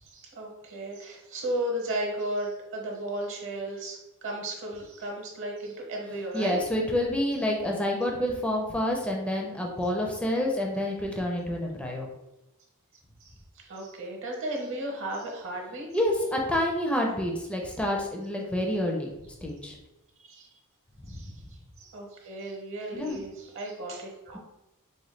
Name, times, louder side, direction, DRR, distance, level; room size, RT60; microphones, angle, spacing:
voice 1, 0.1-6.6 13.6-15.9 20.2-20.5 21.1-21.3 21.8-24.4, right 1 dB, 60° right, 0 dB, 0.8 m, -35 dB
voice 2, 6.3-12.1 15.9-19.1 19.4-19.7 21.1-21.3 22.9-23.2, left 1 dB, 5° left, 0 dB, 0.4 m, -28 dB
4.0 x 2.1 x 3.1 m, 0.92 s
head